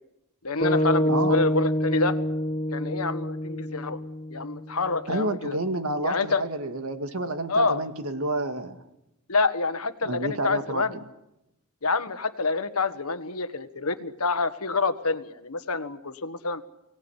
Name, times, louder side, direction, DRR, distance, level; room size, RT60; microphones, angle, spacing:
voice 1, 0.4-2.2 2.7-4.0 4.3-5.6 6.0-6.4 7.5-7.8 9.3-10.9 11.8-16.6, left 3 dB, 80° left, 11 dB, 1.5 m, -27 dB
sound 1, 0.6-4.9, left 1 dB, 20° left, 2.6 m, -26 dB
voice 2, 1.1-1.4 5.1-8.8 10.0-11.0, right 2 dB, 70° right, 8 dB, 2.0 m, -29 dB
24.0 x 18.0 x 10.0 m, 0.89 s
head